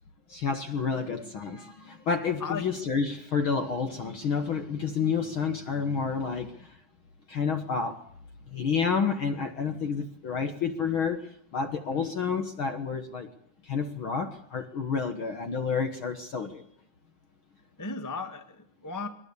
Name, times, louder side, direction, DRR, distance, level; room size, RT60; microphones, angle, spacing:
voice 1, 0.3-6.8 7.3-8.0 8.5-13.3 13.6-16.6, left 5 dB, 60° left, 1.4 m, -30 dB
voice 2, 17.8-19.1, left 4 dB, 30° left, 0.3 m, -36 dB
22.5 x 20.5 x 8.3 m
omnidirectional pair, 4.2 m